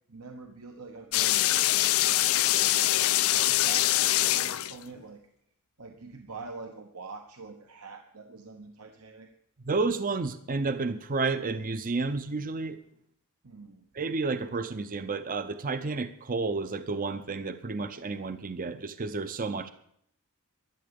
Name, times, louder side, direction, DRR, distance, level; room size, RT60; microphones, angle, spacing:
voice 1, 0.1-5.2 5.8-9.3 13.4-13.8, right 4 dB, 75° right, 4 dB, 1.1 m, -45 dB
sound 1, 1.1-5.0, left 14 dB, 70° left, 0.5 m, -24 dB
voice 2, 9.6-12.8 13.9-19.7, right 3 dB, 40° right, 12 dB, 0.6 m, -31 dB
12.0 x 11.0 x 6.9 m, 0.69 s
head